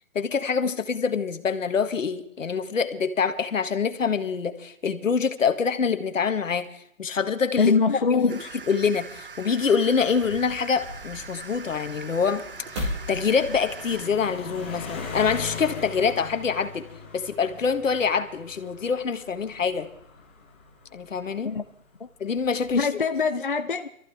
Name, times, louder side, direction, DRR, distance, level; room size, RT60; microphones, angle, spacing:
voice 1, 0.1-7.7 8.1-8.4 8.7-12.4 12.7-19.9 20.9-21.5 22.2-22.9, left 6 dB, 70° left, 1.8 m, -25 dB
voice 2, 7.6-8.5 21.4-21.6 22.0-22.1 22.7-23.9, left 5 dB, 40° left, 0.5 m, -23 dB
sound 1, 8.3-14.1, right 5 dB, 45° right, 0.7 m, -42 dB
sound 2, 9.9-14.7, equal, 20° right, 2.1 m, -38 dB
sound 3, 10.9-21.6 22.4-22.8, left 5 dB, 10° left, 0.9 m, -41 dB
22.5 x 14.5 x 3.6 m
hypercardioid pair, 175°, 40 cm